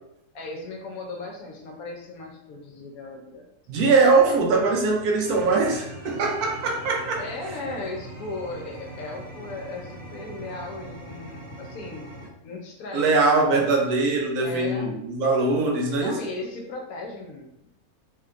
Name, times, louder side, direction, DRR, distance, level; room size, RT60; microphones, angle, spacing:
voice 1, 0.3-3.5 7.2-12.1 12.4-13.2 14.4-15.0 16.0-17.7, left 2 dB, 70° left, 1 dB, 1.1 m, -36 dB
voice 2, 3.7-7.2 12.9-16.2, right 3 dB, 75° right, 1 dB, 1.2 m, -21 dB
sound 1, 4.1-12.3, right 1 dB, 35° right, 1.4 m, -42 dB
3.2 x 3.0 x 2.4 m, 0.81 s
omnidirectional pair, 1.7 m